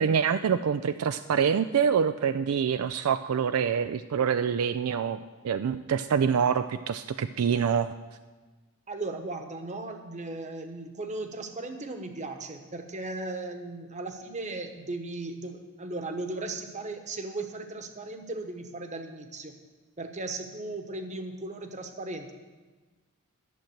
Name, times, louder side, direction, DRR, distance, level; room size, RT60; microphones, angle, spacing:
voice 1, 0.0-5.2 5.4-8.0, right 7 dB, 70° right, 11 dB, 0.4 m, -26 dB
voice 2, 8.9-19.5 20.0-22.3, right 2 dB, 30° right, 6 dB, 1.1 m, -37 dB
11.5 x 7.3 x 7.7 m, 1.3 s
head